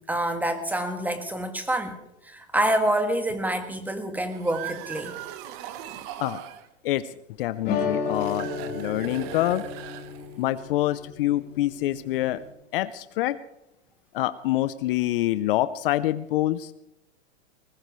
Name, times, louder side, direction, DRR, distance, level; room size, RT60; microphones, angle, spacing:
voice 1, 0.1-1.9 2.3-5.2, right 1 dB, 5° right, 8 dB, 1.4 m, -27 dB
sound 1, 4.2-6.7 8.1-10.5, right 11 dB, 40° right, 1.2 m, -39 dB
voice 2, 6.8-9.6 10.4-12.4 12.7-13.4 14.1-16.7, left 15 dB, 50° left, 16 dB, 0.6 m, -26 dB
sound 2, 7.6-12.5, left 5 dB, 30° left, 3.5 m, -33 dB
20.0 x 19.0 x 3.2 m, 0.87 s
hypercardioid pair, 130°, 35 cm